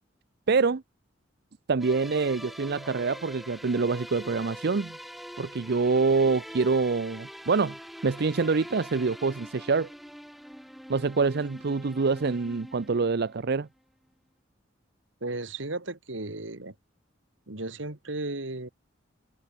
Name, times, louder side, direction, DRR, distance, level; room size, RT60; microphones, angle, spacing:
voice 1, 0.5-0.8 1.7-5.0 5.4-7.7 8.0-9.9 10.9-13.7, right 4 dB, 60° right, 0.6 m, -26 dB
sound 1, 1.8-13.6, equal, ahead, 1.4 m, -44 dB
voice 2, 15.2-16.7 17.5-18.7, right 2 dB, 80° right, 2.5 m, -35 dB
head